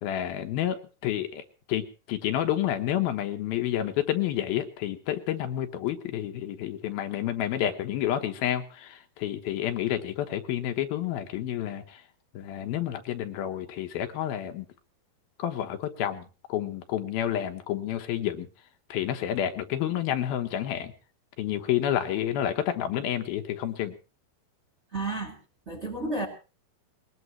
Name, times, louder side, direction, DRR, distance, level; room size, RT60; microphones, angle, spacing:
voice 1, 0.0-1.4 1.7-12.0 12.3-14.7 15.4-18.5 18.9-20.9 21.4-23.9, left 11 dB, 80° left, 7 dB, 2.9 m, -29 dB
voice 2, 24.9-25.4 25.7-26.3, right 2 dB, 20° right, 2 dB, 2.2 m, -31 dB
21.0 x 19.5 x 3.1 m, 0.35 s
omnidirectional pair, 4.3 m